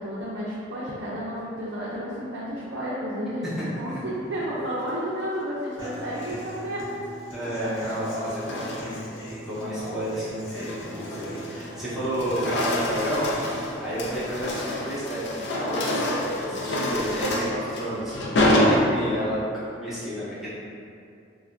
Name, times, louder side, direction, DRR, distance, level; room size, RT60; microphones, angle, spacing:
voice 1, 0.0-6.8 7.6-7.7 16.4-16.8, equal, 70° right, -9 dB, 0.5 m, -32 dB
Human voice / Acoustic guitar, 5.8-13.8, equal, 90° left, 0.8 m, -39 dB
sound 1, 6.0-6.5 7.6-9.2 9.6-9.9 10.4-11.8 12.1-19.4, left 1 dB, 60° left, 0.3 m, -27 dB
voice 2, 7.3-9.1 9.5-13.3 13.8-20.5, equal, ahead, -12 dB, 0.7 m, -31 dB
3.2 x 2.1 x 2.5 m, 2.5 s
head